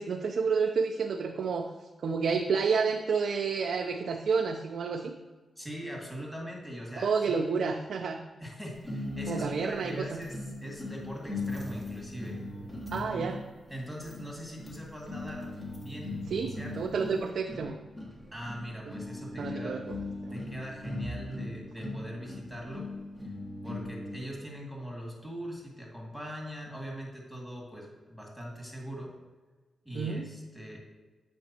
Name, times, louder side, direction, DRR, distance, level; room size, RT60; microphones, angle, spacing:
voice 1, 0.0-1.7 2.0-5.1 7.0-8.2 9.3-10.2 12.9-13.4 16.3-17.8 19.4-19.9 20.2-20.3 29.9-30.3, right 5 dB, 75° right, 3 dB, 0.4 m, -30 dB
voice 2, 5.6-7.8 8.4-12.4 12.9-13.3 13.7-15.5 15.8-16.8 18.3-19.8 20.3-22.9 23.6-29.1 29.8-30.8, equal, 10° left, -1 dB, 2.1 m, -41 dB
sound 1, 8.8-24.3, left 2 dB, 25° left, 1.3 m, -39 dB
7.7 x 5.1 x 2.8 m, 1.3 s
cardioid pair, 60°, 0 cm